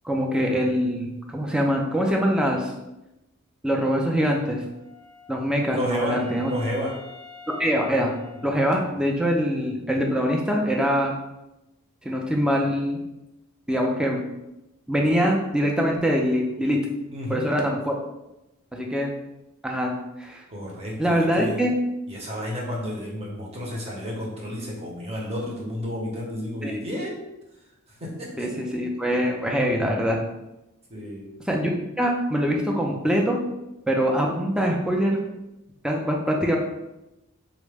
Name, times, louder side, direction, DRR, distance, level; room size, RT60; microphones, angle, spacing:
voice 1, 0.0-2.7 3.6-4.6 5.3-6.5 7.5-8.1 8.4-11.1 12.0-13.0 13.7-14.2 14.9-16.8 17.3-17.9 18.7-19.1 19.6-19.9 20.2-20.4 21.0-21.7 26.6-26.8 28.4-30.2 31.5-31.7 32.0-33.4 33.9-35.2 35.8-36.6, equal, 5° right, 0 dB, 0.3 m, -23 dB
Wind instrument woodwind instrument, 4.4-9.2, left 4 dB, 75° right, 0.9 m, -47 dB
voice 2, 5.7-6.9 8.4-8.5 17.1-17.4 20.5-21.6 22.1-27.2 28.0-28.5 30.9-31.3, equal, 30° right, -3 dB, 0.8 m, -31 dB
3.8 x 2.1 x 3.3 m, 0.94 s
head